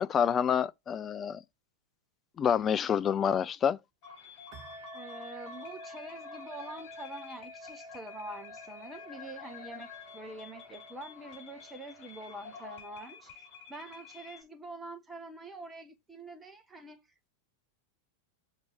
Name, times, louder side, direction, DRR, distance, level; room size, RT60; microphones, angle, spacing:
voice 1, 0.0-1.4 2.4-3.8, left 8 dB, 25° left, 0.4 m, -27 dB
sound 1, 4.0-14.4, left 6 dB, 45° left, 4.1 m, -50 dB
sound 2, 4.5-12.6, equal, 40° right, 1.8 m, -50 dB
voice 2, 4.9-17.0, right 2 dB, 10° right, 1.4 m, -45 dB
6.7 x 4.6 x 4.8 m
figure-of-eight pair, 90°, 0 cm